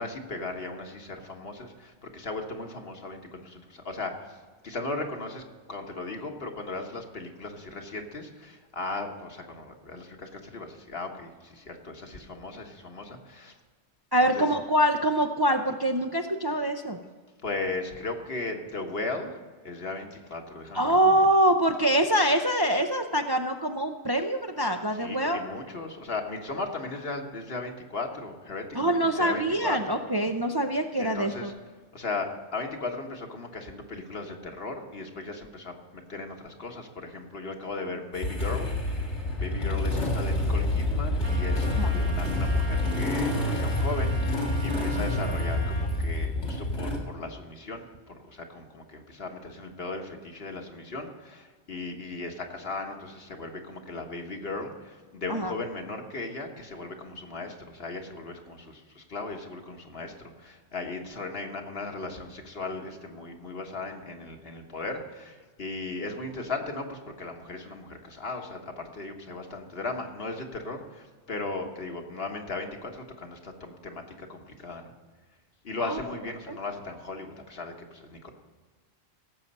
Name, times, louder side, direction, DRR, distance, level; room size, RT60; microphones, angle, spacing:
voice 1, 0.0-13.6 14.2-14.5 17.4-21.0 24.9-30.0 31.0-31.5 31.9-74.9 75.6-78.3, left 3 dB, 60° left, 3 dB, 1.6 m, -37 dB
voice 2, 14.1-17.0 20.7-25.4 28.7-31.5 41.8-41.9 55.3-55.5 75.8-76.0 76.5-76.6, right 1 dB, 30° right, 4 dB, 0.5 m, -24 dB
Motorcycle / Engine starting, 38.1-47.0, left 1 dB, 90° left, 2.6 m, -27 dB
Trumpet, 41.2-45.9, right 1 dB, 60° right, 2.4 m, -42 dB
17.0 x 7.4 x 5.4 m, 1.4 s
omnidirectional pair, 1.1 m